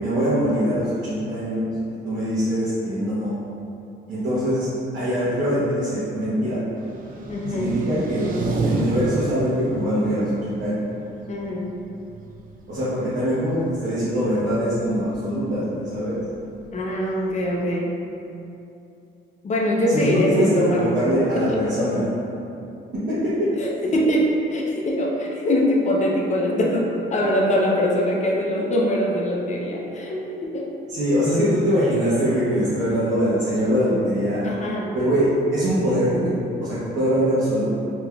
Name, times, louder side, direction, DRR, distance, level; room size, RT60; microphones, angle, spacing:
voice 1, 0.0-1.6 2.0-3.3 4.1-4.7 4.9-6.6 7.5-8.3 8.6-10.8 12.7-16.2 19.9-22.1 23.1-23.5 30.9-34.4 34.9-36.2 36.6-37.7, equal, 60° right, -12 dB, 0.9 m, -22 dB
sound 1, 6.8-17.8, right 2 dB, 45° right, 0.5 m, -32 dB
voice 2, 7.3-7.8 11.3-11.7 16.7-18.0 19.4-21.0 21.3-21.6 23.6-30.7 34.4-35.0, left 1 dB, 35° left, -2 dB, 0.6 m, -23 dB
3.5 x 2.9 x 2.3 m, 2.7 s
cardioid pair, 90°, 20 cm